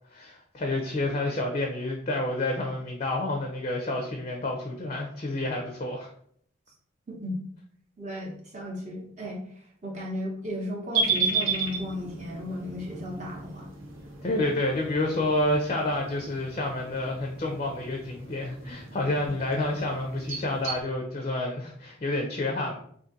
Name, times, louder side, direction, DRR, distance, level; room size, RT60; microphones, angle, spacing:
voice 1, 0.1-6.1 14.2-22.8, left 1 dB, 35° left, 1 dB, 0.4 m, -29 dB
voice 2, 7.1-7.4 8.0-9.4 9.8-13.7, left 1 dB, 35° right, -3 dB, 0.8 m, -34 dB
sound 1, 10.9-20.8, right 4 dB, 85° right, 0.8 m, -34 dB
2.6 x 2.6 x 3.8 m, 0.62 s
head